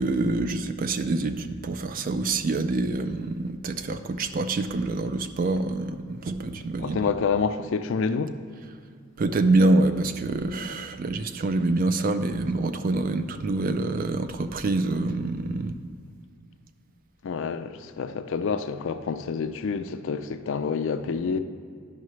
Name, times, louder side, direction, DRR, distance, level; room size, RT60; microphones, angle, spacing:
voice 1, 0.0-7.0 9.2-15.8, right 2 dB, 40° right, 0.3 m, -26 dB
voice 2, 6.8-8.4 17.2-21.4, left 5 dB, 60° left, 0.4 m, -28 dB
10.5 x 5.7 x 3.1 m
head